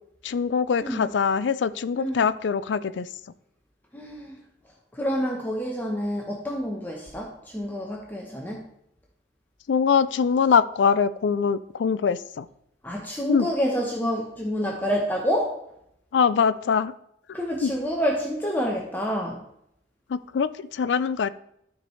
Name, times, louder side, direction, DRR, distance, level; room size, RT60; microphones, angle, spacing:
voice 1, 0.2-3.1 9.7-12.5 13.3-13.5 16.1-16.9 17.6-17.7 20.1-21.3, left 6 dB, 80° left, 15 dB, 0.4 m, -23 dB
voice 2, 1.9-2.3 3.9-4.4 4.9-8.6 12.8-15.6 17.3-19.4, equal, 10° left, -2 dB, 0.8 m, -28 dB
12.5 x 4.6 x 3.1 m, 0.75 s
head